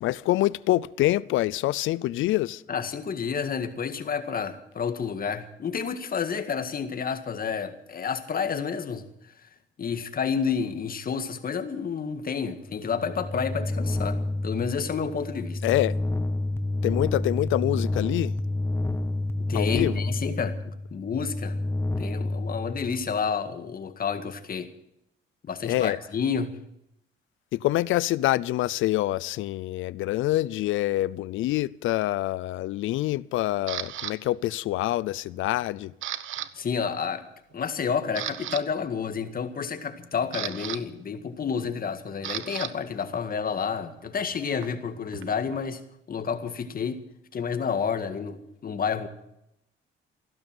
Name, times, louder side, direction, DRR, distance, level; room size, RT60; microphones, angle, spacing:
voice 1, 0.0-2.6 15.6-16.0 16.8-18.3 19.5-20.0 25.6-26.0 27.5-35.9, left 16 dB, 85° left, 0.5 m, -26 dB
voice 2, 2.7-9.0 9.8-15.6 19.5-21.6 22.0-24.7 25.4-26.6 36.5-37.2 37.5-45.8 46.1-47.0 47.3-49.1, left 6 dB, 45° left, 1.9 m, -30 dB
sound 1, 12.6-23.3, left 2 dB, 10° left, 1.3 m, -29 dB
Camera, 33.7-34.1 34.7-35.1 35.4-36.5 36.7-37.0 37.5-37.6 38.0-38.6 39.8-42.7 43.0-45.6, right 12 dB, 80° right, 0.9 m, -36 dB
15.5 x 12.0 x 7.7 m
cardioid pair, 90°, 20 cm